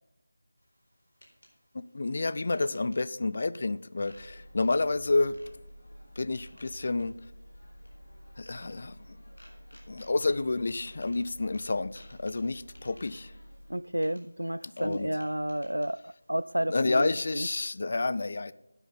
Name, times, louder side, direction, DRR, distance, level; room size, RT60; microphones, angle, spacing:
sound 1, 0.6-17.3, equal, 80° left, 4.3 m, -62 dB
voice 1, 1.7-5.4 6.2-7.1 8.4-9.0 9.9-13.3 14.8-15.1 16.7-18.5, left 3 dB, 45° left, 0.4 m, -29 dB
sound 2, 4.0-13.7, equal, 60° left, 3.6 m, -50 dB
voice 2, 13.7-17.5, right 1 dB, 90° right, 0.3 m, -31 dB
11.0 x 9.1 x 3.9 m
figure-of-eight pair, 165°, 0 cm